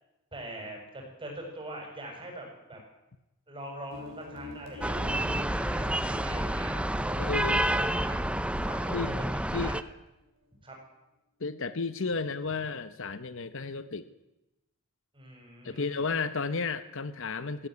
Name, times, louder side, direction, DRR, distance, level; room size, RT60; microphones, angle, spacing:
voice 1, 0.3-2.8 3.5-8.2 8.6-9.8 10.6-10.8 15.1-16.0, right 1 dB, 25° right, 1 dB, 7.4 m, -43 dB
sound 1, 3.9-9.3, left 2 dB, 60° right, 4.5 m, -47 dB
sound 2, 4.8-9.8, right 1 dB, 5° right, 0.7 m, -29 dB
voice 2, 7.2-7.6 8.9-9.2 9.5-9.7 11.4-14.1 15.6-17.7, left 4 dB, 60° left, 13 dB, 0.9 m, -33 dB
19.0 x 16.0 x 9.7 m, 0.96 s
head